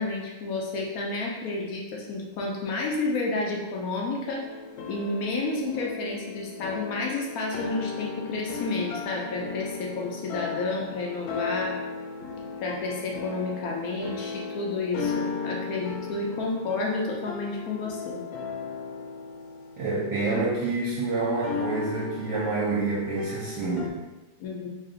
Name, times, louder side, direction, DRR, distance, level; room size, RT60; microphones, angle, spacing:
voice 1, 0.0-4.4 4.9-11.8 12.6-18.2 24.4-24.7, left 3 dB, 65° left, -2 dB, 1.0 m, -31 dB
sound 1, 4.4-20.8 21.4-23.9, left 5 dB, 90° left, 1.3 m, -36 dB
voice 2, 19.8-24.0, right 3 dB, 70° right, -6 dB, 1.3 m, -28 dB
3.2 x 2.6 x 3.8 m, 1.1 s
omnidirectional pair, 2.0 m